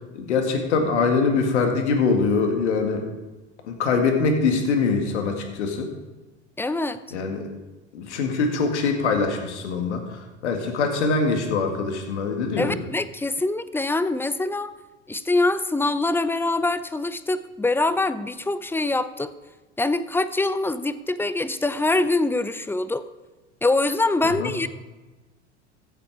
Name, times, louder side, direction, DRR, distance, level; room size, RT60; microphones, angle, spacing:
voice 1, 0.1-3.0 3.6-5.9 7.1-7.4 7.9-12.8 24.4-24.5, left 4 dB, 75° left, 4 dB, 2.1 m, -23 dB
voice 2, 6.6-7.0 12.6-14.7 15.1-19.3 19.8-23.0 23.6-24.7, left 2 dB, 5° left, 14 dB, 0.6 m, -24 dB
15.0 x 7.8 x 4.8 m, 1.2 s
hypercardioid pair, 80°, 35 cm